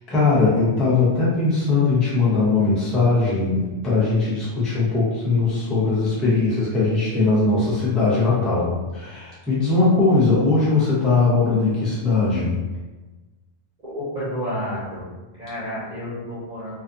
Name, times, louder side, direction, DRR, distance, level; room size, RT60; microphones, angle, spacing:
voice 1, 0.1-12.6, left 3 dB, ahead, -9 dB, 0.5 m, -20 dB
voice 2, 13.8-15.1 15.4-16.8, equal, 45° right, -10 dB, 0.8 m, -30 dB
2.5 x 2.4 x 2.3 m, 1.2 s
omnidirectional pair, 1.1 m